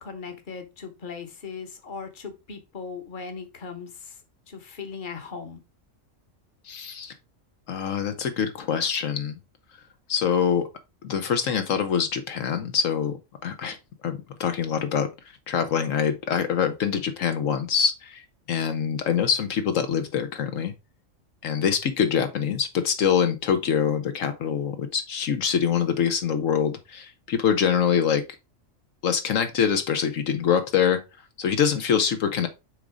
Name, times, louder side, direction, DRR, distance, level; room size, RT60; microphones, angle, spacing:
voice 1, 0.0-4.2 4.5-5.6, left 5 dB, 40° left, 1.3 m, -38 dB
voice 2, 6.6-7.1 7.7-9.4 10.1-10.7 11.0-13.2 13.4-13.8 14.0-15.1 15.5-18.2 18.5-20.7 21.4-28.2 29.0-31.0 31.4-32.5, left 7 dB, 75° left, 1.2 m, -24 dB
6.4 x 3.9 x 4.8 m
omnidirectional pair, 1.4 m